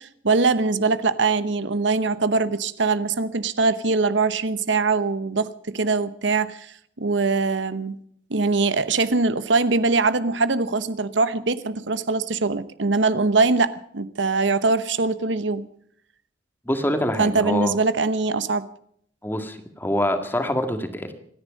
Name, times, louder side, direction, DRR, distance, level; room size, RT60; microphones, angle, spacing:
voice 1, 0.0-8.0 8.3-15.7 17.2-18.6, right 3 dB, 85° right, 14 dB, 1.0 m, -22 dB
voice 2, 16.7-17.8 19.2-21.1, left 1 dB, 10° left, 6 dB, 1.9 m, -25 dB
27.0 x 10.0 x 5.2 m, 0.66 s
head